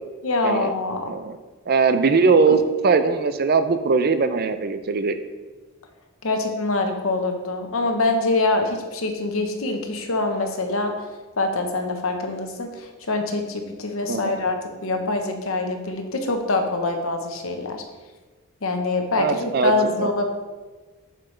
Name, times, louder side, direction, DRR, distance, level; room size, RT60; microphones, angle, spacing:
voice 1, 0.2-1.0 2.5-2.6 6.2-10.9 11.4-14.6 14.8-17.8 18.6-20.2, left 2 dB, 70° left, 4 dB, 1.0 m, -24 dB
voice 2, 1.7-2.6 2.8-5.2 14.1-14.3 19.1-19.7 20.0-20.1, right 4 dB, 45° right, 10 dB, 0.4 m, -20 dB
7.5 x 6.7 x 3.2 m, 1.3 s
head